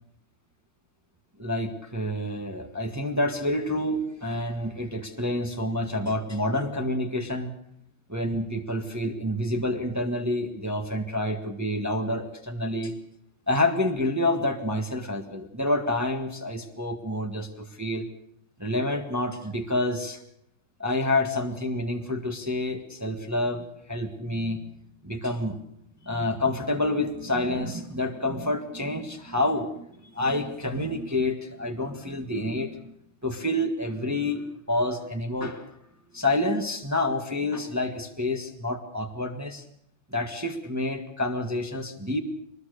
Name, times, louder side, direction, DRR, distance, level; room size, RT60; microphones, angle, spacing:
voice 1, 1.4-7.5 8.1-12.9 13.5-18.1 18.6-20.2 20.8-24.6 25.0-25.6 26.0-32.9 33.2-35.7 36.1-39.6 40.1-42.2, left 1 dB, 10° right, 4 dB, 1.5 m, -28 dB
23.0 x 20.5 x 6.7 m, 0.75 s
omnidirectional pair, 2.0 m